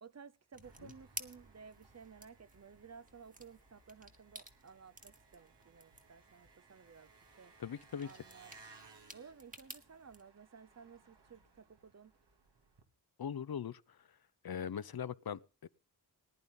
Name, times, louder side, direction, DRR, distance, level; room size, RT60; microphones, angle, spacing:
voice 1, 0.0-7.6 8.0-8.5 9.1-12.1, right 6 dB, 40° right, 0.6 m, -56 dB
sound 1, 0.5-10.2, right 2 dB, 20° right, 1.5 m, -54 dB
Engine, 0.6-12.8, right 4 dB, 80° right, 2.4 m, -63 dB
voice 2, 7.6-8.1 13.2-14.1 14.4-15.7, left 8 dB, 60° left, 0.7 m, -41 dB
19.5 x 10.5 x 3.7 m
wide cardioid pair, 115°, 41 cm